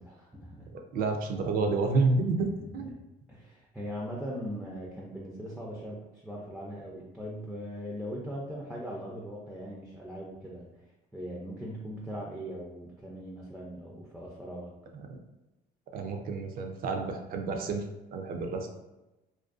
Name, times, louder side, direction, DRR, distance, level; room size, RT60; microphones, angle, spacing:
voice 1, 0.0-0.7 2.6-2.9 3.3-10.7 11.1-14.7, equal, ahead, -3 dB, 0.4 m, -40 dB
voice 2, 0.7-2.9 15.1-15.2 15.9-17.8 18.1-18.7, right 3 dB, 60° right, 4 dB, 0.4 m, -29 dB
2.5 x 2.2 x 2.4 m, 1.0 s
cardioid pair, 110°, 17 cm